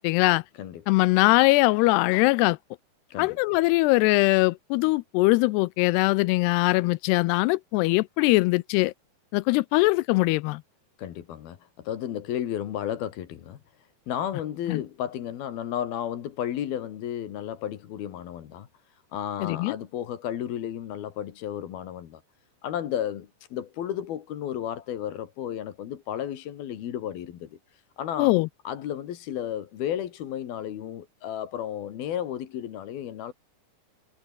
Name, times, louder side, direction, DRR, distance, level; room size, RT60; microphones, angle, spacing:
voice 1, 0.0-0.4 0.9-2.6 3.2-8.9 9.3-10.6 14.7-14.8 19.4-19.7 28.2-28.5, left 22 dB, 85° left, 2.6 m, -21 dB
voice 2, 0.5-1.0 3.1-3.4 11.0-13.6 14.1-18.7 18.9-22.2 22.6-28.4 28.7-33.3, left 10 dB, 70° left, 3.6 m, -33 dB
omnidirectional pair, 4.8 m